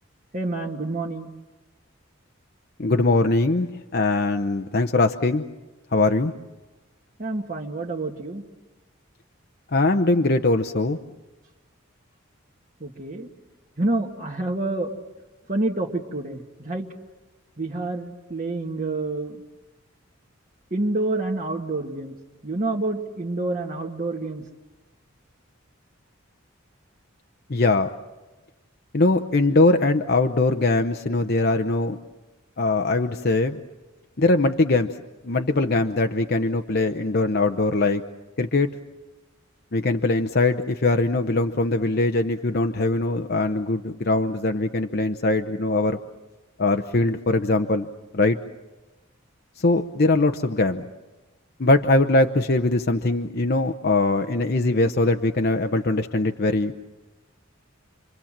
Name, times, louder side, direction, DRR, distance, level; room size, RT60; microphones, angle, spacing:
voice 1, 0.3-1.3 7.2-8.4 12.8-13.3 13.8-14.9 15.5-16.9 17.6-19.4 20.7-22.1 22.4-24.4, right 2 dB, 40° right, -1 dB, 1.6 m, -28 dB
voice 2, 2.8-5.4 5.9-6.3 9.7-11.0 27.5-27.9 28.9-32.0 32.6-33.6 34.2-38.0 38.4-38.7 39.7-46.0 46.6-47.9 48.1-48.4 49.6-50.9 51.6-56.7, left 2 dB, 50° left, 6 dB, 0.8 m, -21 dB
29.5 x 24.0 x 7.4 m, 1.1 s
head